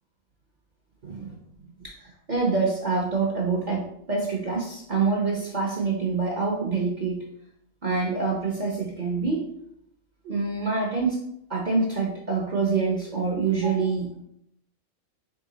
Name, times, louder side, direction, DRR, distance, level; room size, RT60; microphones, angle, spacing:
voice 1, 1.0-1.4 1.8-7.2 7.8-9.5 10.2-11.2 11.5-14.1, right 4 dB, 45° right, -1 dB, 0.6 m, -26 dB
3.8 x 3.3 x 3.8 m, 0.75 s
omnidirectional pair, 1.4 m